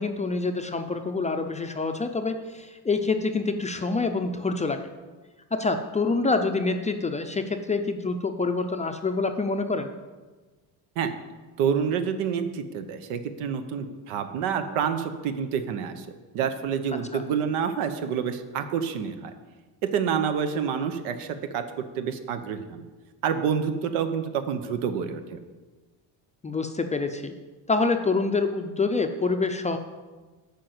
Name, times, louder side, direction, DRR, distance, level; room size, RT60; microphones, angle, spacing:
voice 1, 0.0-4.8 5.5-9.9 17.1-17.2 26.4-27.3 27.7-29.8, left 3 dB, 15° left, 5 dB, 0.4 m, -26 dB
voice 2, 11.6-16.1 16.3-19.3 19.8-21.6 22.0-22.8 23.2-25.4, right 7 dB, 90° right, 8 dB, 1.0 m, -28 dB
8.7 x 5.3 x 7.8 m, 1.3 s
cardioid pair, 120°, 49 cm